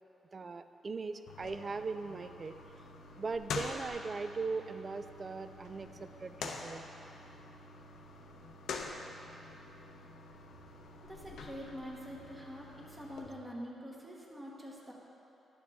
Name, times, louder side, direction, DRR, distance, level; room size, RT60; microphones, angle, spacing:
voice 1, 0.3-2.6 3.2-6.9, right 4 dB, 30° right, 10 dB, 0.3 m, -39 dB
sound 1, 1.3-13.3, left 4 dB, 80° left, 0.7 m, -46 dB
voice 2, 11.0-14.9, equal, 15° right, -3 dB, 1.1 m, -45 dB
10.5 x 7.2 x 3.6 m, 2.9 s
wide cardioid pair, 145°, 0 cm